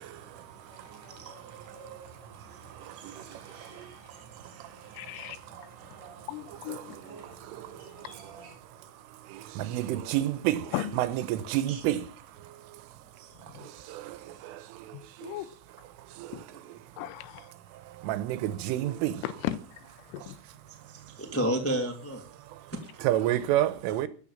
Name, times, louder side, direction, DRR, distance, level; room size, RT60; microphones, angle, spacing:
voice 1, 0.0-8.5, right 3 dB, 40° right, 7.9 m, -51 dB
voice 2, 5.0-5.4 6.3-7.0 10.7-11.0 13.5-13.7 14.9-15.5 16.3-16.4 17.0-17.5 19.2-19.8 20.1-20.4, left 14 dB, 90° left, 3.5 m, -36 dB
voice 3, 9.7-10.6 11.0-12.0 18.1-19.1 23.0-24.1, right 13 dB, 85° right, 3.5 m, -27 dB
voice 4, 20.9-22.2 22.7-23.1, equal, 5° left, 1.1 m, -32 dB
14.0 x 10.0 x 7.3 m
omnidirectional pair, 5.7 m